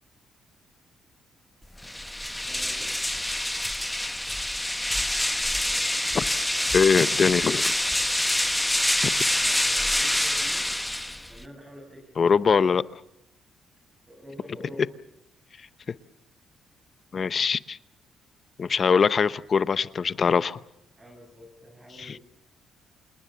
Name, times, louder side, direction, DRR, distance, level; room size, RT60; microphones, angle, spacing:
sound 1, 1.8-11.4, left 1 dB, 5° left, 0.8 m, -26 dB
voice 1, 2.4-2.9 9.3-10.7 11.3-12.2 14.1-14.8 21.0-22.2, equal, 20° right, 2 dB, 5.7 m, -47 dB
voice 2, 6.7-7.6 12.2-12.9 17.1-17.8 18.6-20.6 22.0-22.2, left 6 dB, 45° left, 16 dB, 0.8 m, -22 dB
27.5 x 20.5 x 6.8 m, 0.82 s
cardioid pair, 90°, 0 cm